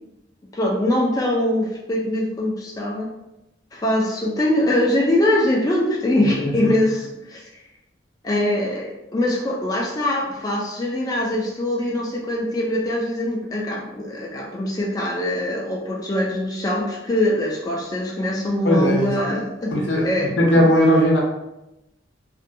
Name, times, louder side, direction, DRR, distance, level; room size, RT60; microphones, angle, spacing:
voice 1, 0.5-3.1 3.7-7.5 8.2-20.4, left 1 dB, 20° left, -3 dB, 0.3 m, -23 dB
voice 2, 6.2-6.7 18.6-19.2 19.7-21.2, equal, 70° left, -1 dB, 0.6 m, -18 dB
2.5 x 2.2 x 2.5 m, 0.91 s
head